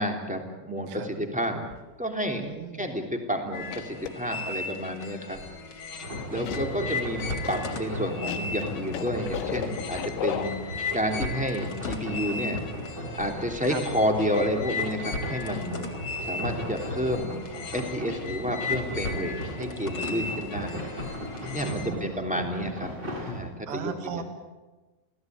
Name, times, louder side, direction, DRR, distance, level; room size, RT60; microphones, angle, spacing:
voice 1, 0.0-1.6 2.0-2.4 2.8-5.4 6.3-12.6 13.2-15.8 16.2-17.4 17.7-20.8 21.5-22.9 23.1-24.2, equal, ahead, 3 dB, 2.2 m, -30 dB
sound 1, 1.7-2.0 2.6-2.7 3.6-4.3 6.4-6.8 7.2-11.0 11.8-12.2 12.5-12.6, left 10 dB, 80° left, 3.9 m, -35 dB
voice 2, 2.4-2.9 6.4-7.0 13.7-13.8 21.4-22.1 23.7-24.2, right 7 dB, 75° right, 7 dB, 4.2 m, -38 dB
sound 2, 3.5-21.9, left 4 dB, 30° left, 3.6 m, -37 dB
sound 3, 6.0-23.4, equal, 20° right, 8.5 m, -37 dB
28.5 x 17.5 x 9.5 m, 1.2 s
omnidirectional pair, 5.2 m